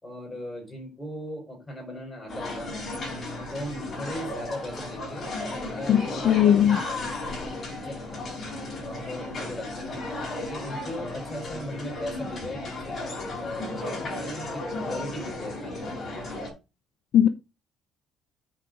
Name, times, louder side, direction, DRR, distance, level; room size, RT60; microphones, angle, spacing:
voice 1, 0.0-2.8 3.3-8.2 8.8-10.1 10.4-13.0 13.4-16.0, left 1 dB, 10° left, 4.3 m, -38 dB
sound 1, 2.3-16.5, left 2 dB, 30° left, 5.8 m, -35 dB
voice 2, 5.9-6.8 17.1-17.3, left 10 dB, 55° left, 0.7 m, -19 dB
9.0 x 4.9 x 5.2 m
cardioid pair, 155°, 0 cm